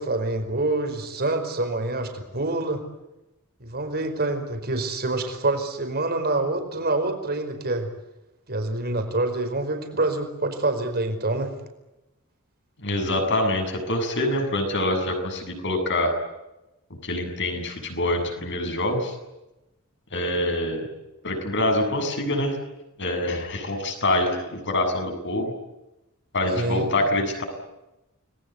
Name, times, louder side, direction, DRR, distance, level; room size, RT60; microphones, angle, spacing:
voice 1, 0.0-2.8 3.6-7.9 8.5-11.5 26.5-26.9, right 2 dB, 45° right, 6 dB, 5.0 m, -26 dB
voice 2, 12.8-16.1 17.0-19.1 20.1-20.9 21.2-22.6 23.0-25.5 26.3-27.4, left 1 dB, 55° left, 5 dB, 7.5 m, -25 dB
30.0 x 21.5 x 8.3 m, 0.96 s
head